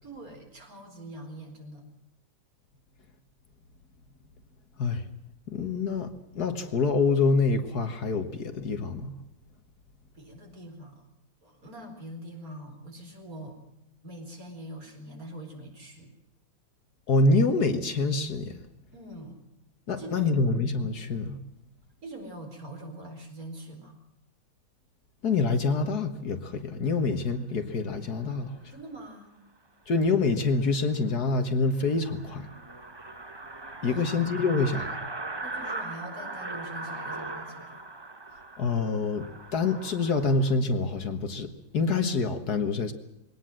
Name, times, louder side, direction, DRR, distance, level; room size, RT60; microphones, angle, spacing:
voice 1, 0.0-1.9 10.1-11.1 11.4-13.6 14.0-16.1 18.9-19.4 20.0-20.4 22.0-24.0 28.7-29.3 33.8-34.2 35.4-37.8, right 1 dB, 50° right, 3 dB, 4.8 m, -43 dB
voice 2, 5.5-9.2 17.1-18.5 19.9-21.4 25.2-28.7 29.9-32.5 33.8-35.0 38.6-42.9, left 3 dB, 60° left, 8 dB, 1.9 m, -26 dB
sound 1, 30.6-30.7 31.1-31.2 31.5-31.6 31.8-40.5, right 2 dB, 20° right, 0.9 m, -39 dB
22.0 x 18.0 x 7.6 m, 0.88 s
omnidirectional pair, 2.0 m